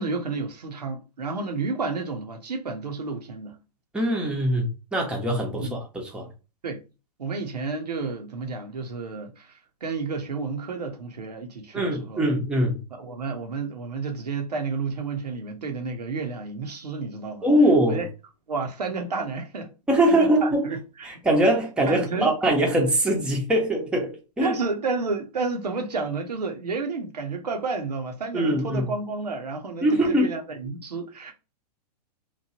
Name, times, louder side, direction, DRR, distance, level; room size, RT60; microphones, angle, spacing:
voice 1, 0.0-3.6 5.5-5.8 6.6-6.8 7.2-9.5 9.8-12.3 12.9-17.5 17.9-18.1 18.5-19.7 20.1-20.8 21.9-22.3 24.4-31.3, right 4 dB, 75° right, 0.8 m, -31 dB
voice 2, 3.9-6.3 11.7-12.8 17.4-18.0 19.9-20.7 21.0-24.6 28.3-28.9 29.8-30.3, right 1 dB, 5° right, 0.7 m, -22 dB
3.0 x 2.3 x 2.7 m
figure-of-eight pair, 105°, 21 cm